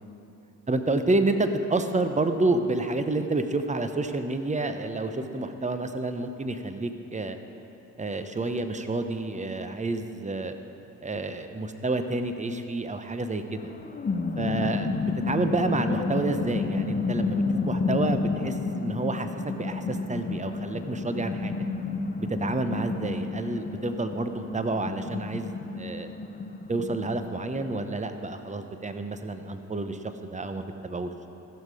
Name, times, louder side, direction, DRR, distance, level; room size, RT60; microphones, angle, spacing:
voice 1, 0.7-7.4 8.0-10.5 11.0-13.7 14.4-21.5 22.2-26.1 26.7-31.1, right 2 dB, 20° right, 8 dB, 0.8 m, -29 dB
sound 1, 13.6-27.8, left 4 dB, 25° left, 0.7 m, -30 dB
15.0 x 6.6 x 4.8 m, 2.9 s
hypercardioid pair, 45°, 39 cm